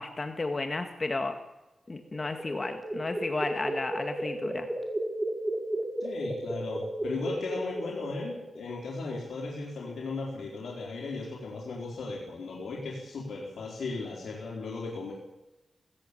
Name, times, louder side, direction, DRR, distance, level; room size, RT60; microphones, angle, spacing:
voice 1, 0.0-1.4 1.9-4.7, left 3 dB, 40° left, 6 dB, 2.0 m, -33 dB
sound 1, 1.9-8.6, right 1 dB, 20° right, 4.7 m, -34 dB
voice 2, 6.0-15.1, left 3 dB, 90° left, -2 dB, 4.1 m, -36 dB
18.0 x 17.0 x 8.6 m, 0.98 s
cardioid pair, 70°, 0 cm